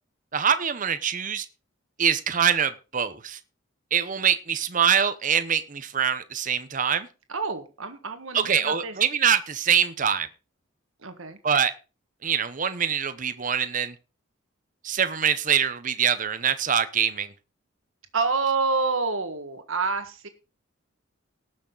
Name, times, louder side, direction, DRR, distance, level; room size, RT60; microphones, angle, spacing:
voice 1, 0.3-1.5 2.0-3.4 3.9-7.1 8.3-10.3 11.4-11.7 12.2-13.9 14.8-17.3, right 7 dB, 40° right, 0.8 m, -24 dB
voice 2, 7.3-8.9 11.0-11.4 18.1-20.3, right 4 dB, 75° right, 1.6 m, -28 dB
18.5 x 6.5 x 3.9 m
head